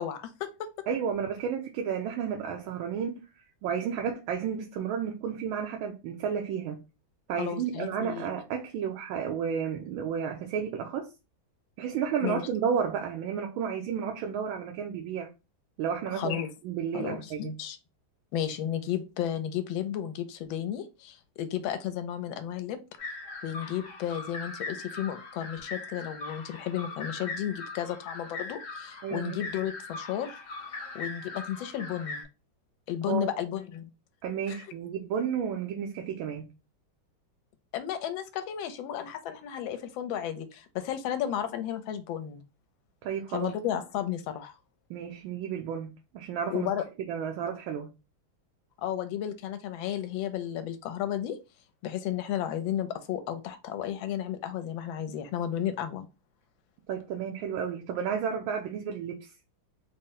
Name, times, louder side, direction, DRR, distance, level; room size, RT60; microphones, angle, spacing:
voice 1, 0.0-0.7 7.4-8.3 12.2-12.4 16.2-16.5 16.9-17.8 18.3-22.8 23.4-30.4 30.9-32.2 32.9-33.9 34.5-34.7 37.7-42.4 43.3-44.5 46.5-46.8 48.8-51.4 51.8-56.1, left 10 dB, 80° left, 1.3 m, -33 dB
voice 2, 0.9-3.2 3.6-6.8 7.3-11.1 11.8-15.3 15.8-17.5 29.0-29.4 33.1-33.4 34.2-36.5 43.0-43.5 44.9-46.7 47.1-47.9 56.9-59.3, right 7 dB, 80° right, 1.4 m, -32 dB
sound 1, 23.0-32.2, left 3 dB, 60° left, 0.8 m, -40 dB
4.1 x 2.1 x 3.7 m
omnidirectional pair, 2.2 m